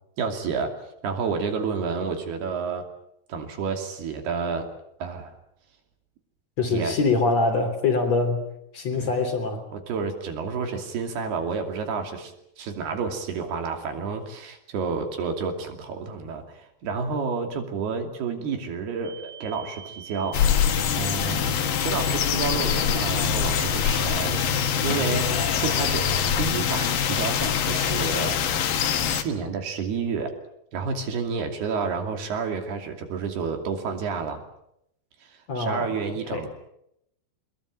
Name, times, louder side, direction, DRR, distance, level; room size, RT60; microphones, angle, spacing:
voice 1, 0.2-0.7 1.0-2.9 3.3-4.7 5.0-5.4 6.6-7.0 9.0-9.1 9.7-20.4 21.0-21.5 21.8-28.4 29.1-30.3 30.7-34.4 35.2-36.5, right 5 dB, 75° right, 5 dB, 4.7 m, -30 dB
voice 2, 6.6-8.4 8.7-9.6 35.5-35.9 36.3-36.5, left 3 dB, 40° left, 5 dB, 4.3 m, -24 dB
sound 1, 19.0-29.1, right 9 dB, 40° right, 5.7 m, -43 dB
sound 2, 20.3-29.2, left 8 dB, 65° left, 3.0 m, -24 dB
23.0 x 21.5 x 8.9 m, 0.78 s
omnidirectional pair, 4.7 m